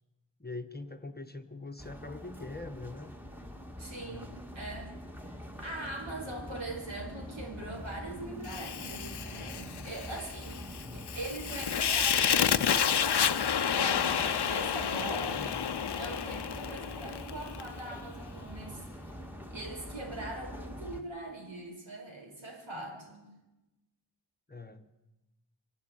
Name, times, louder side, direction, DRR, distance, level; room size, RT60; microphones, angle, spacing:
voice 1, 0.4-3.1 4.0-4.4 10.8-11.1 15.4-15.7 24.5-24.9, left 3 dB, 20° left, 6 dB, 1.2 m, -43 dB
sound 1, 1.8-21.0, equal, 5° right, 2.0 m, -44 dB
voice 2, 3.8-10.7 10.9-15.5 16.0-18.9 19.5-23.3, right 2 dB, 80° right, 1 dB, 5.5 m, -42 dB
Fire, 8.5-17.7, left 8 dB, 60° left, 0.7 m, -30 dB
24.0 x 12.0 x 9.1 m, 1.0 s
wide cardioid pair, 85°, 45 cm